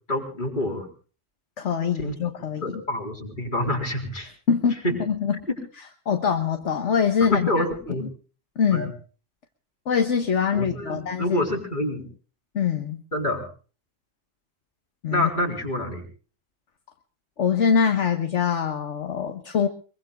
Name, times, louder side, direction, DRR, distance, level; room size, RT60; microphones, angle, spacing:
voice 1, 0.1-0.9 2.0-2.2 2.6-4.3 4.8-5.0 5.5-5.6 7.3-8.0 8.7-8.9 10.5-12.1 13.1-13.5 15.1-16.0, left 1 dB, 35° left, 1 dB, 4.4 m, -27 dB
voice 2, 1.6-2.8 4.5-4.8 5.1-5.4 6.0-8.1 8.6-8.9 9.8-11.4 12.5-13.0 15.0-15.3 17.4-19.7, left 6 dB, 60° left, 5 dB, 1.7 m, -24 dB
23.5 x 23.0 x 2.4 m, 0.38 s
omnidirectional pair, 1.4 m